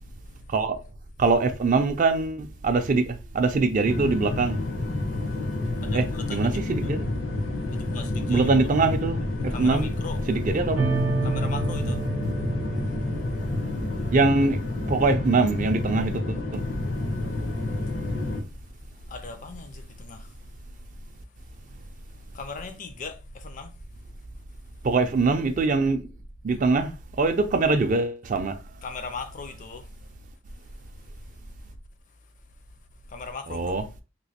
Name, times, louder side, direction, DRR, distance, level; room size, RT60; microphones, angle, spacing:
voice 1, 1.2-4.6 5.9-7.1 8.3-9.9 10.3-10.8 14.1-16.6 24.8-26.0 26.4-28.6 33.5-33.8, right 3 dB, 40° right, 0.4 m, -23 dB
sound 1, 3.8-18.4, left 2 dB, 75° left, 0.9 m, -29 dB
voice 2, 5.8-6.9 7.7-8.7 9.5-10.2 11.2-12.0 19.1-20.3 22.3-23.7 28.8-29.8 33.1-33.8, left 4 dB, 40° left, 0.4 m, -38 dB
sound 2, 10.8-14.2, right 4 dB, 60° right, 0.7 m, -30 dB
3.0 x 2.4 x 2.8 m
head